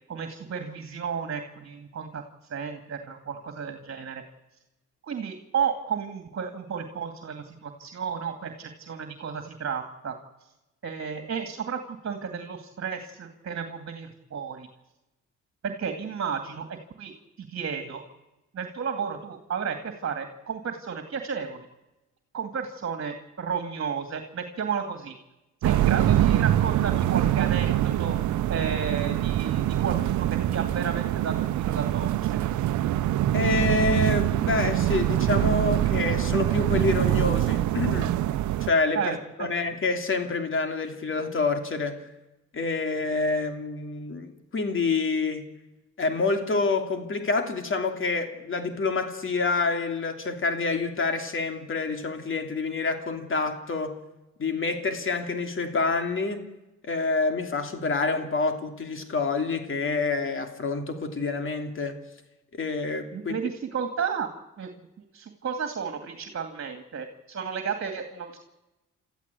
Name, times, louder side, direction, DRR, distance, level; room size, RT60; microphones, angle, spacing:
voice 1, 0.1-2.2 2.5-4.2 5.1-10.2 10.8-14.7 15.6-18.0 18.5-21.7 22.3-25.2 25.6-28.2 28.5-32.5 38.9-39.5 63.1-64.3 64.6-64.7 65.1-68.4, right 6 dB, 50° right, 2.4 m, -33 dB
sound 1, 25.6-38.7, right 12 dB, 70° right, 0.9 m, -24 dB
voice 2, 33.3-38.1 38.6-42.1 42.5-45.5 46.0-54.0 54.4-56.4 56.8-62.0 62.5-63.3, left 3 dB, 40° left, 3.0 m, -27 dB
29.5 x 14.0 x 8.4 m
cardioid pair, 85°, 30 cm